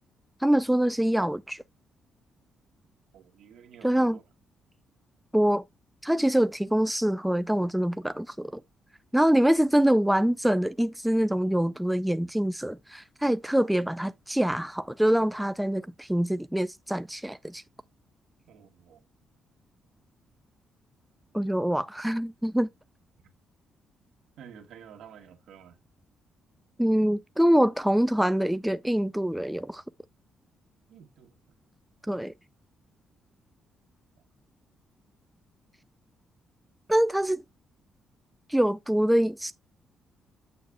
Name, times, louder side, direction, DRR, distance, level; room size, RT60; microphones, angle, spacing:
voice 1, 0.4-1.6 3.8-4.2 5.3-5.6 6.0-8.6 9.1-17.6 21.3-22.7 26.8-29.8 32.1-32.3 36.9-37.4 38.5-39.5, equal, 5° right, 0.3 m, -25 dB
voice 2, 3.1-4.2 18.5-19.0 24.4-25.8 30.9-31.3 32.0-32.3, right 8 dB, 75° right, 1.5 m, -50 dB
8.1 x 6.8 x 2.2 m
cardioid pair, 120°, 0 cm